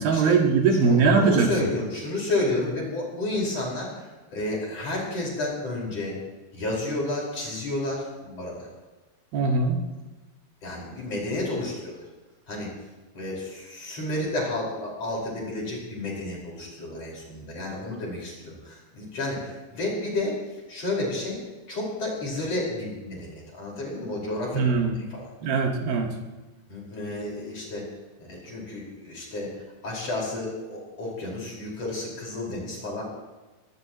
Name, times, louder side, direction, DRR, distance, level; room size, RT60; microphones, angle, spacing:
voice 1, 0.0-1.5 9.3-9.8 24.5-25.0 25.4-26.1, right 4 dB, 60° right, 2 dB, 3.4 m, -21 dB
voice 2, 0.8-6.2 6.5-8.7 10.6-12.0 12.5-12.7 13.1-20.4 20.7-21.4 21.7-25.3 26.7-27.8 28.2-29.5 29.8-33.0, left 2 dB, 35° left, -3 dB, 5.9 m, -31 dB
23.5 x 18.5 x 3.1 m, 1.2 s
omnidirectional pair, 5.2 m